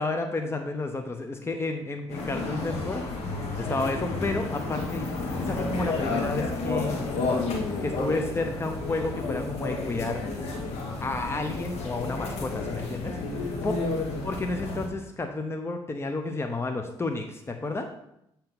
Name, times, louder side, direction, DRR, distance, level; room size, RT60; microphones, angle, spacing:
voice 1, 0.0-3.0 3.6-5.1 5.4-7.3 7.8-10.2 11.0-13.1 13.6-13.7 14.2-17.9, left 2 dB, 20° left, 4 dB, 0.7 m, -31 dB
sound 1, 2.1-14.9, left 3 dB, 80° left, 1.2 m, -31 dB
7.7 x 2.9 x 5.3 m, 0.79 s
supercardioid pair, 60°, 11 cm